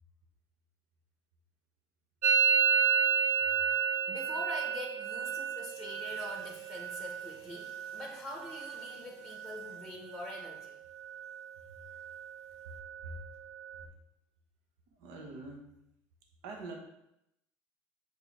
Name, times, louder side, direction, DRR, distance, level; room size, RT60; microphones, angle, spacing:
Musical instrument, 2.2-9.9 10.1-10.7 11.0-11.6 11.8-13.8, right 7 dB, 30° right, 0.3 m, -32 dB
voice 1, 4.1-10.8, left 2 dB, ahead, 0 dB, 0.9 m, -44 dB
voice 2, 15.0-15.7 16.4-16.7, right 3 dB, 75° right, 2 dB, 1.1 m, -44 dB
6.5 x 4.4 x 3.5 m, 0.83 s
cardioid pair, 130°, 7 cm